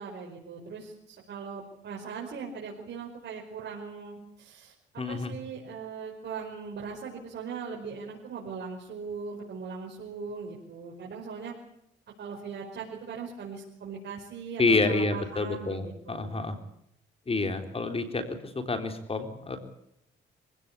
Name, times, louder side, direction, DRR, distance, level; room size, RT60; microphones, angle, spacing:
voice 1, 0.0-4.7 5.1-11.5 12.2-16.4, right 5 dB, 60° right, -1 dB, 5.2 m, -40 dB
voice 2, 5.0-5.3 14.6-16.6 17.3-19.6, left 3 dB, 30° left, 7 dB, 3.8 m, -28 dB
25.5 x 17.0 x 8.4 m, 0.77 s
cardioid pair, 90°, 20 cm